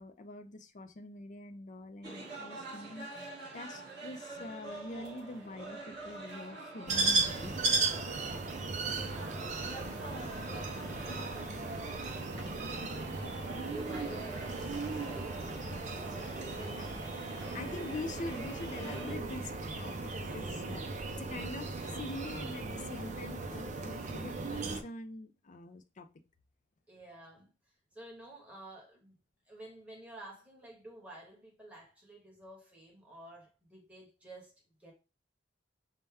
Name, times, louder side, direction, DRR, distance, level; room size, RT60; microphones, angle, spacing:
voice 1, 0.0-3.1 3.5-7.6 16.5-16.8 17.5-26.1, left 2 dB, 40° left, 0.5 m, -44 dB
sound 1, 2.0-19.2, right 2 dB, 60° right, 2.1 m, -46 dB
sound 2, 6.9-24.8, right 3 dB, 40° right, 0.6 m, -36 dB
voice 2, 8.5-15.4 16.4-17.0 17.3-17.7 20.1-20.4 26.9-27.5 27.9-29.1 29.5-34.5 34.8-34.9, right 1 dB, 5° right, 1.4 m, -51 dB
5.4 x 2.2 x 3.4 m
head